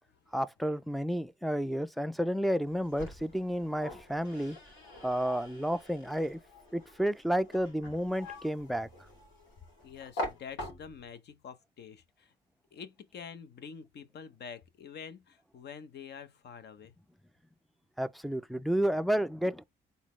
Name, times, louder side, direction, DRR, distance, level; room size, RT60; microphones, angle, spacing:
voice 1, 0.3-4.6 5.0-6.4 6.7-8.9 18.0-19.6, equal, ahead, 0.3 m, -31 dB
sound 1, 2.6-11.2, left 1 dB, 85° left, 2.6 m, -44 dB
voice 2, 9.8-12.3 12.7-16.9, left 6 dB, 60° left, 0.8 m, -47 dB
4.0 x 4.0 x 3.1 m
cardioid pair, 90°, 20 cm